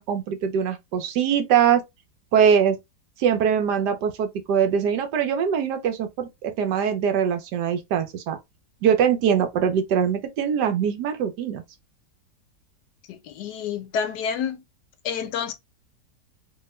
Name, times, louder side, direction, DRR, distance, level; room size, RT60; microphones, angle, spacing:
voice 1, 0.0-1.8 2.3-2.8 3.2-8.4 8.8-11.6, right 8 dB, 75° right, 1.3 m, -22 dB
voice 2, 13.1-14.6 15.0-15.5, left 7 dB, 75° left, 1.1 m, -29 dB
3.3 x 2.3 x 3.1 m
omnidirectional pair, 1.8 m